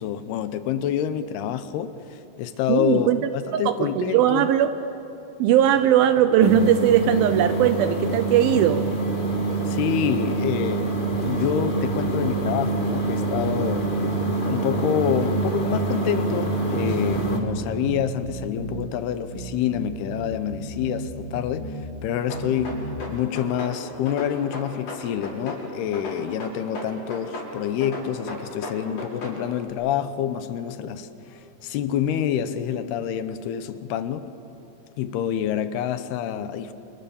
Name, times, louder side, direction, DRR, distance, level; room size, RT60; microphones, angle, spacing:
voice 1, 0.0-3.1 3.3-4.5 9.7-13.9 14.5-34.3 35.0-36.7, left 9 dB, 75° left, 2.8 m, -27 dB
voice 2, 2.7-4.7 5.4-8.9, right 10 dB, 75° right, 2.3 m, -19 dB
sound 1, 6.4-17.4, right 3 dB, 35° left, 0.8 m, -26 dB
sound 2, 11.1-12.9 13.3-15.9 16.3-18.9 19.3-21.9 22.3-23.0, right 2 dB, 25° right, 1.5 m, -36 dB
sound 3, 22.3-23.8 24.1-25.6 25.9-27.5 27.8-29.4, left 2 dB, 55° left, 7.1 m, -34 dB
30.0 x 27.5 x 7.1 m
omnidirectional pair, 4.8 m